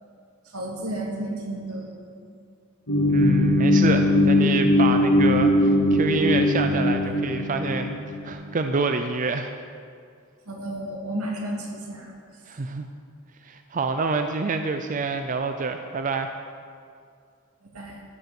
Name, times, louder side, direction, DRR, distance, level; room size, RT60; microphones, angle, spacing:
voice 1, 0.5-1.9 10.5-12.1 17.6-18.0, right 1 dB, 90° right, -1 dB, 2.3 m, -32 dB
sound 1, 2.9-8.3, left 1 dB, 75° left, 2.0 m, -20 dB
voice 2, 3.1-9.5 12.5-12.9 13.4-16.3, right 4 dB, 35° right, 6 dB, 0.5 m, -27 dB
14.0 x 9.0 x 4.9 m, 2.2 s
head